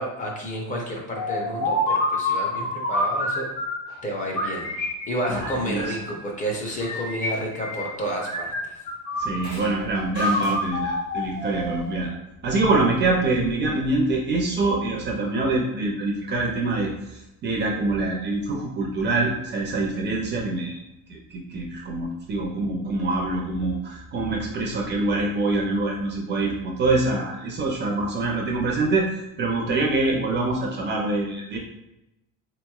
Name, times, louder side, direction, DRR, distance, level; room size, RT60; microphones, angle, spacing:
voice 1, 0.0-3.5 4.0-4.7 5.1-8.8, equal, 25° left, -1 dB, 0.5 m, -30 dB
sound 1, 1.2-3.9 4.4-6.2 6.8-7.9 8.2-9.7 10.1-11.9, left 1 dB, 60° left, 0.9 m, -27 dB
voice 2, 5.3-6.0 9.2-12.2 12.4-20.8 21.1-31.6, right 2 dB, 35° right, -1 dB, 0.4 m, -25 dB
3.9 x 2.9 x 2.2 m, 0.91 s
cardioid pair, 175°, 34 cm